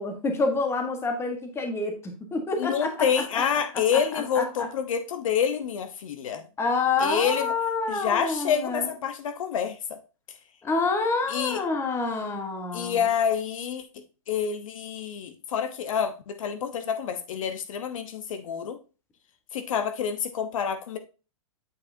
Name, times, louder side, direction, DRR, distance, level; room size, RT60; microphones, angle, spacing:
voice 1, 0.0-2.9 3.3-3.4 3.9-4.7 6.6-8.9 10.6-13.0, left 3 dB, 15° left, 1.3 m, -28 dB
voice 2, 2.6-6.4 7.0-7.5 7.9-10.0 11.3-11.6 12.7-18.8 19.5-21.0, left 7 dB, 65° left, 1.0 m, -28 dB
8.3 x 4.9 x 2.7 m
hypercardioid pair, 135°, 18 cm